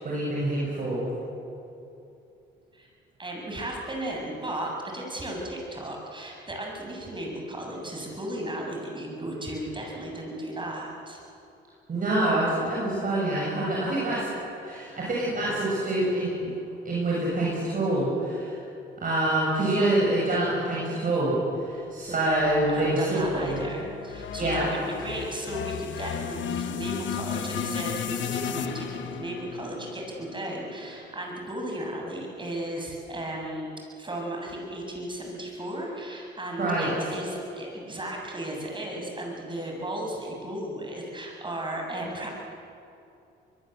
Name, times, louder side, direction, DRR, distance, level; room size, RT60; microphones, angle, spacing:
voice 1, 0.0-1.1 11.9-14.3 14.6-16.5 16.8-18.6 19.0-23.6 24.4-24.7 36.6-36.9, right 1 dB, 45° right, -6 dB, 7.5 m, -26 dB
voice 2, 3.2-11.2 21.8-21.9 22.7-33.7 34.0-42.3, right 1 dB, 25° right, 0 dB, 7.4 m, -35 dB
sound 1, 22.3-30.7, left 8 dB, 70° left, 1.4 m, -35 dB
23.0 x 22.5 x 8.1 m, 2.7 s
cardioid pair, 90°, 20 cm